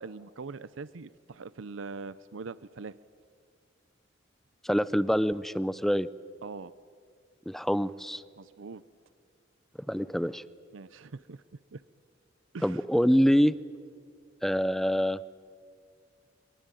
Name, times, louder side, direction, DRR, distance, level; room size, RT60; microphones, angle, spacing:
voice 1, 0.0-2.9 6.4-6.7 8.4-8.8 10.7-11.4 11.7-11.8 12.5-12.8, right 4 dB, 75° right, 16 dB, 0.6 m, -42 dB
voice 2, 4.6-6.1 7.5-8.2 9.9-10.4 12.6-13.5 14.4-15.2, equal, ahead, 17 dB, 0.6 m, -25 dB
23.0 x 23.0 x 9.1 m, 2.1 s
head